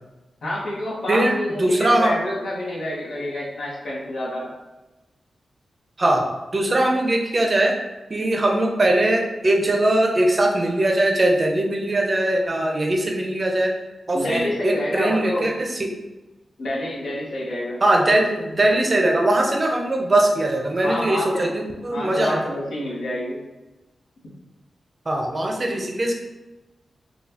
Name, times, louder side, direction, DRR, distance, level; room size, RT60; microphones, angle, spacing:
voice 1, 0.4-4.4 14.1-15.5 16.6-17.8 20.8-21.5 21.9-23.4, left 1 dB, 80° left, -5 dB, 1.0 m, -28 dB
voice 2, 1.1-2.2 6.0-7.8 8.1-13.8 14.1-16.0 17.8-22.5 25.1-26.2, right 1 dB, 35° right, 1 dB, 0.5 m, -21 dB
3.9 x 2.3 x 2.8 m, 1.1 s
wide cardioid pair, 115°, 0 cm